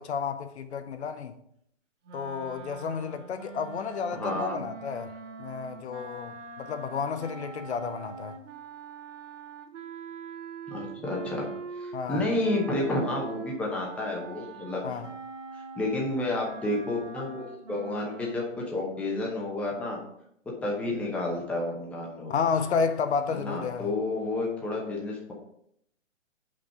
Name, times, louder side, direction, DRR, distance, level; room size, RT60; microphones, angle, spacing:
voice 1, 0.0-1.3 2.1-5.1 5.4-8.4 11.9-12.2 14.8-15.1 22.3-23.9, left 6 dB, 60° left, 0.7 m, -31 dB
sound 1, 2.0-12.1 12.4-18.3, right 5 dB, 70° right, 1.1 m, -43 dB
voice 2, 4.1-4.6 10.7-11.5 11.8-14.8 15.5-20.0 20.4-22.3 23.3-25.3, left 2 dB, 5° left, 0.8 m, -30 dB
5.3 x 5.2 x 4.9 m
hypercardioid pair, 140°, 38 cm